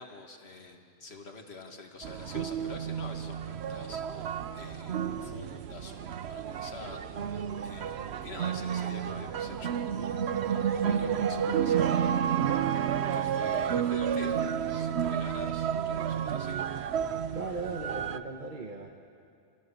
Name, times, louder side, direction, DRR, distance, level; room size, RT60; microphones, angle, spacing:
voice 1, 0.0-10.1 10.4-12.8 13.1-14.4 14.7-16.6, left 3 dB, 90° left, 3 dB, 2.1 m, -47 dB
sound 1, 2.0-18.2, right 8 dB, 85° right, 1.0 m, -31 dB
voice 2, 17.3-18.9, right 3 dB, 50° right, 3 dB, 1.3 m, -37 dB
27.0 x 16.5 x 7.4 m, 2.4 s
omnidirectional pair, 1.1 m